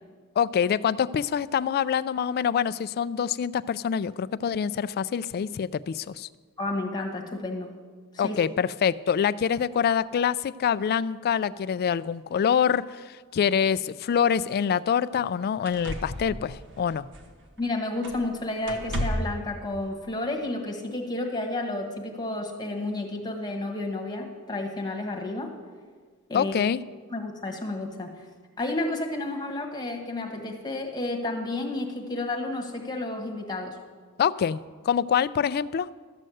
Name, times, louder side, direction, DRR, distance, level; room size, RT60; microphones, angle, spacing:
voice 1, 0.4-6.3 8.2-17.1 26.3-26.8 34.2-35.9, left 7 dB, 45° left, 17 dB, 0.3 m, -25 dB
voice 2, 6.6-7.7 8.2-8.4 17.6-25.5 26.3-26.5 27.1-28.2 28.6-33.8, left 2 dB, 20° left, 1 dB, 1.5 m, -31 dB
sound 1, 15.1-15.3 15.7-17.6 18.0-18.3 18.6-19.4 20.5-20.6, equal, 55° right, 1.4 m, -34 dB
13.0 x 6.5 x 7.7 m, 1.6 s
head